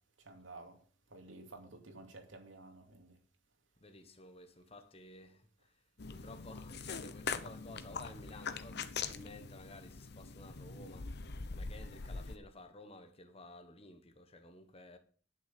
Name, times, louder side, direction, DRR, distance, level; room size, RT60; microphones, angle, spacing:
voice 1, 0.2-0.8 1.1-3.1, right 2 dB, 85° right, 2.5 m, -52 dB
voice 2, 3.8-5.8 6.1-11.1 11.5-15.0, left 2 dB, 30° left, 1.3 m, -54 dB
sound 1, 6.0-12.4, left 5 dB, 60° left, 0.9 m, -43 dB
11.5 x 6.5 x 6.8 m
head